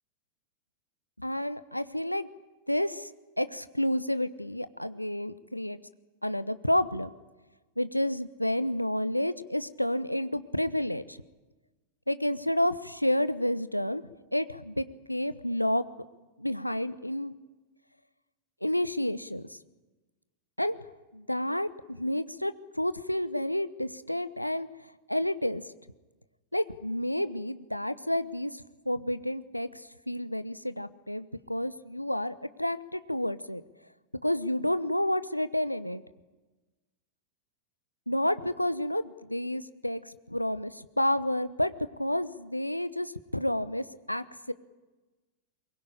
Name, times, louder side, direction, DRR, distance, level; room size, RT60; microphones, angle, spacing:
voice 1, 1.2-2.3 2.7-3.1 3.4-5.8 6.2-7.1 7.8-11.2 12.1-14.0 14.3-15.9 16.4-17.3 18.6-19.6 20.6-20.8 21.1-24.7 25.1-25.6 26.5-33.6 34.2-36.0 38.1-41.7 42.0-44.5, left 1 dB, 90° left, 14 dB, 0.9 m, -30 dB
23.5 x 22.0 x 10.0 m, 1.2 s
figure-of-eight pair, 90°, 0 cm